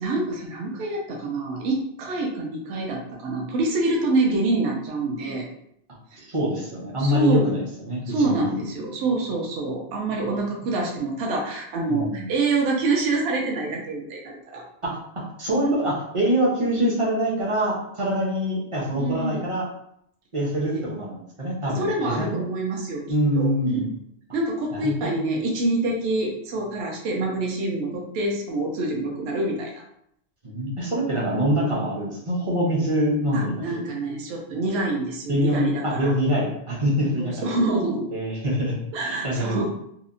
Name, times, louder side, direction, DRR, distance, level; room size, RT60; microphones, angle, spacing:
voice 1, 0.0-5.5 6.1-6.2 7.0-7.5 8.1-14.7 19.0-19.5 20.7-20.8 21.8-23.0 23.4-23.8 24.3-29.7 33.3-36.1 37.2-38.1 38.9-39.7, right 2 dB, 70° right, -1 dB, 0.8 m, -26 dB
voice 2, 6.2-8.6 11.9-12.3 14.8-15.0 15.4-19.7 20.3-22.3 23.1-23.9 24.7-25.4 30.4-33.9 35.3-37.5 38.1-38.7 39.0-39.6, equal, 35° right, -3 dB, 0.5 m, -25 dB
2.8 x 2.0 x 2.4 m, 0.73 s
omnidirectional pair, 1.2 m